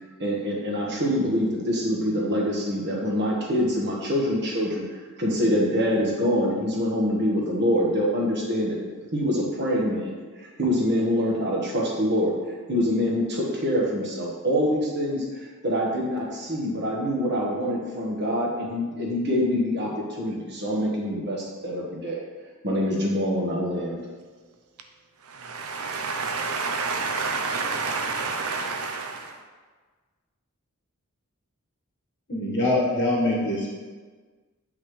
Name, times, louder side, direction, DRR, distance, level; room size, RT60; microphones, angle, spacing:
voice 1, 0.2-4.8 5.2-8.8 9.1-12.3 12.7-22.2 22.6-24.0, equal, 50° right, 1.5 m, -25 dB
voice 2, 25.4-29.3, right 4 dB, 75° right, 0.7 m, -29 dB
voice 3, 32.3-33.7, left 1 dB, 55° left, 1.6 m, -24 dB
8.0 x 5.6 x 3.3 m
head